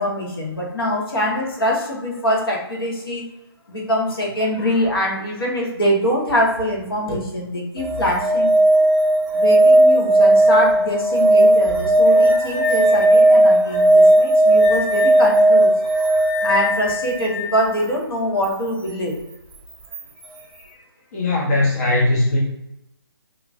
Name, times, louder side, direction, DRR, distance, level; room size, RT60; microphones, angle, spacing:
voice 1, 0.0-3.2 3.7-8.5 9.3-15.7 16.1-19.1 20.6-20.8, equal, 65° left, -2 dB, 1.3 m, -23 dB
sound 1, 7.8-17.6 19.9-20.0, right 1 dB, 15° right, 0.5 m, -15 dB
voice 2, 21.1-22.4, left 2 dB, 35° left, -5 dB, 0.8 m, -19 dB
3.6 x 2.9 x 2.5 m, 0.89 s
figure-of-eight pair, 155°, 13 cm